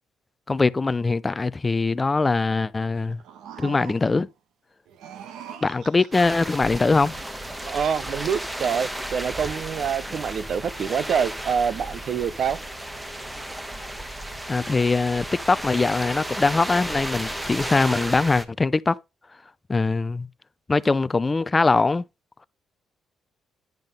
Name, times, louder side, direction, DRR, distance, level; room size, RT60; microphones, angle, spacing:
voice 1, 0.5-3.2 3.6-4.3 5.6-7.1 14.5-19.0 19.7-20.3 20.7-22.0, left 3 dB, 25° left, 0.4 m, -22 dB
sound 1, 3.0-4.3 4.9-6.5, right 9 dB, 85° right, 1.2 m, -42 dB
sound 2, 6.1-18.5, right 1 dB, 15° right, 1.3 m, -33 dB
voice 2, 7.7-12.6, right 7 dB, 60° right, 0.6 m, -26 dB
10.5 x 3.7 x 5.2 m
cardioid pair, 90°, 0 cm